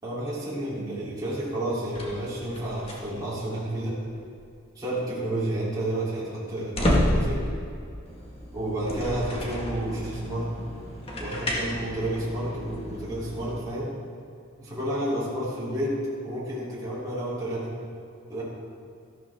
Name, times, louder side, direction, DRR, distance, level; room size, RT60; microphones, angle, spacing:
voice 1, 0.0-4.0 4.8-7.4 8.5-10.5 11.2-13.9 14.6-16.0 16.2-17.7 18.3-18.4, right 1 dB, 20° right, -9 dB, 3.5 m, -30 dB
sound 1, 1.9-3.4 4.1-4.4 6.5-13.6, equal, 25° left, 1.8 m, -31 dB
14.5 x 12.0 x 3.7 m, 2.4 s
head